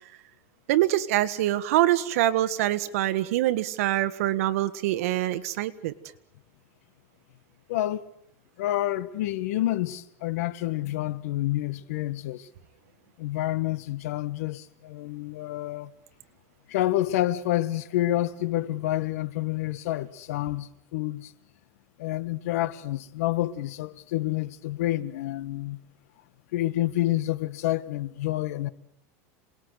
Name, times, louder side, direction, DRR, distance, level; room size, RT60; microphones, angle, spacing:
voice 1, 0.7-5.9, right 14 dB, 75° right, 1.7 m, -24 dB
voice 2, 7.7-8.0 8.6-12.5 13.2-15.9 16.7-21.3 22.0-25.8 26.5-28.7, left 15 dB, 80° left, 1.4 m, -28 dB
27.0 x 20.0 x 8.2 m
supercardioid pair, 165°, 8 cm